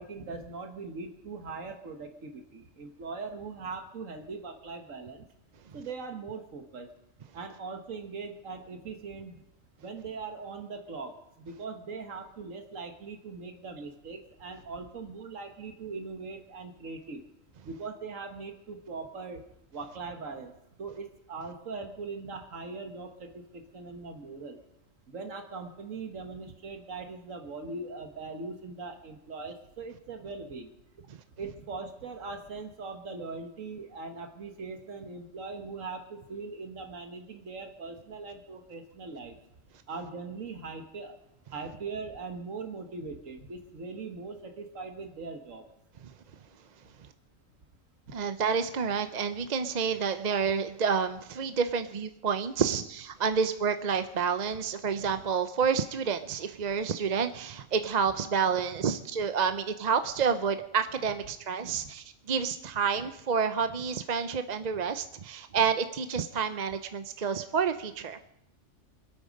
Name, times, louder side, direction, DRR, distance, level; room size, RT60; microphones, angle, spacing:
voice 1, 0.0-5.3 5.7-6.9 7.3-9.4 9.8-17.3 17.7-19.4 19.7-20.5 20.8-24.6 25.1-30.7 31.4-39.4 39.9-41.2 41.5-45.6 61.7-61.8, right 4 dB, 90° right, 5 dB, 1.8 m, -40 dB
voice 2, 48.1-68.3, right 6 dB, 45° right, 9 dB, 0.6 m, -29 dB
25.5 x 8.8 x 5.3 m, 0.81 s
omnidirectional pair, 1.3 m